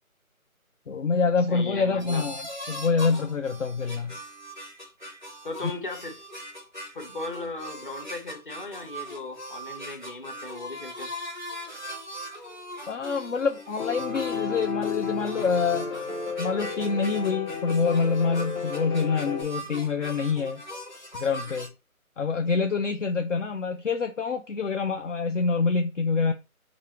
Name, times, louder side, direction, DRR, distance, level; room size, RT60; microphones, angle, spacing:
voice 1, 0.9-2.4 2.7-4.2 5.6-5.7 12.9-15.9 16.4-20.6 21.2-21.7 22.2-26.3, left 5 dB, 60° left, 0.5 m, -26 dB
voice 2, 1.5-2.2 5.4-6.2 6.9-11.1, left 3 dB, 35° left, 0.9 m, -37 dB
sound 1, 2.0-21.7, equal, 35° right, 0.4 m, -40 dB
Piano, 13.8-19.4, left 6 dB, 90° left, 1.5 m, -32 dB
5.2 x 2.5 x 2.9 m
figure-of-eight pair, 160°, 43 cm